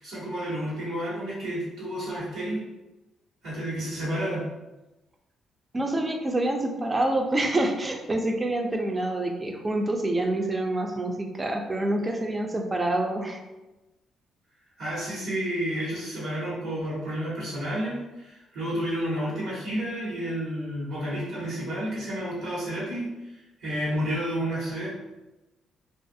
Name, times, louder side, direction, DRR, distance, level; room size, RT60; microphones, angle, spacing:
voice 1, 0.0-2.6 3.4-4.4 14.8-23.1 23.3-24.9, equal, 85° right, -11 dB, 1.2 m, -31 dB
voice 2, 5.7-13.4, right 1 dB, 25° right, 3 dB, 0.4 m, -27 dB
2.5 x 2.4 x 2.6 m, 1.0 s
cardioid pair, 90°, 0 cm